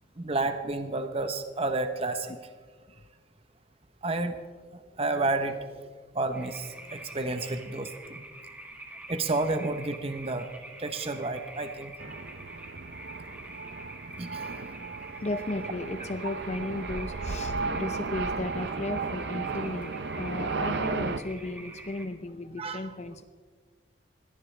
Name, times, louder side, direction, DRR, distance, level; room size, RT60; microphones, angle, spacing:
voice 1, 0.2-2.3 4.0-4.4 4.7-5.9 6.1-8.2 9.1-10.5 10.8-11.9 14.2-14.4 16.2-16.3 22.6-22.8, right 2 dB, 30° right, 8 dB, 0.9 m, -31 dB
sound 1, 6.3-22.1, right 1 dB, 10° right, 1.7 m, -46 dB
sound 2, 12.0-21.2, right 4 dB, 60° right, 0.6 m, -34 dB
voice 2, 15.2-23.2, left 2 dB, 35° left, 10 dB, 0.6 m, -35 dB
22.0 x 17.5 x 3.3 m, 1.5 s
head